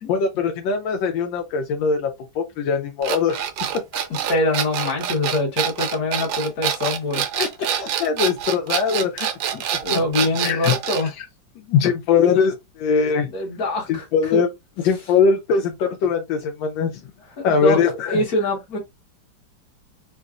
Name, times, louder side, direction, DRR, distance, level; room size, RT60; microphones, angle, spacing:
voice 1, 0.1-2.1 2.3-3.4 7.4-9.6 9.9-10.0 10.4-10.7 11.2-11.3 11.7-13.3 13.9-14.5 14.8-16.9 17.4-18.2, left 6 dB, 85° left, 1.3 m, -21 dB
sound 1, 3.0-11.1, right 9 dB, 90° right, 1.3 m, -26 dB
voice 2, 4.3-7.2 9.5-11.1 13.3-14.1 14.3-14.4 17.4-17.8 18.1-18.8, left 2 dB, 55° left, 1.7 m, -24 dB
3.8 x 2.3 x 2.4 m
omnidirectional pair, 2.0 m